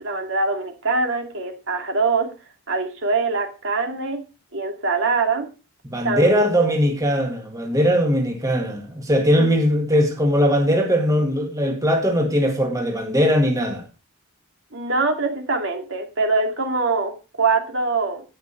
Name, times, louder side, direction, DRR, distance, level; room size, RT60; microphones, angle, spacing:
voice 1, 0.0-2.3 2.7-4.2 4.5-5.5 6.0-6.7 9.4-9.5 14.7-18.2, right 3 dB, 65° right, 2.4 m, -23 dB
voice 2, 5.9-13.9, equal, 15° right, 1.8 m, -20 dB
10.5 x 9.5 x 4.4 m
head